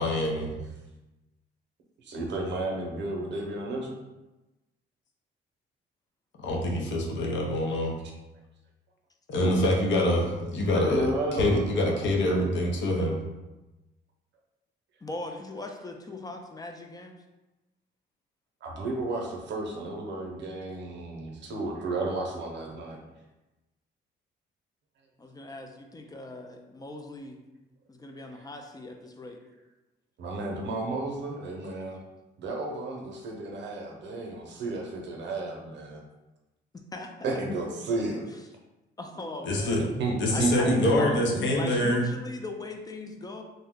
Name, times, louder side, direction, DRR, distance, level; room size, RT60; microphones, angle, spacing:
voice 1, 0.0-0.6 6.4-8.0 9.3-13.2 39.4-39.8 40.2-42.0, left 1 dB, 65° left, 0 dB, 0.7 m, -25 dB
voice 2, 2.0-4.0 9.4-9.6 10.7-12.0 18.6-23.0 30.2-32.0 32.4-36.0 37.2-38.3 40.0-41.4 41.7-41.8, right 2 dB, 65° right, 0 dB, 0.7 m, -32 dB
voice 3, 15.0-17.2 25.2-27.4 27.9-29.4 36.7-37.1 39.0-39.9 40.3-41.1 41.5-43.4, left 2 dB, 20° left, 3 dB, 0.3 m, -39 dB
2.6 x 2.1 x 3.6 m, 1.0 s
cardioid pair, 90°, 20 cm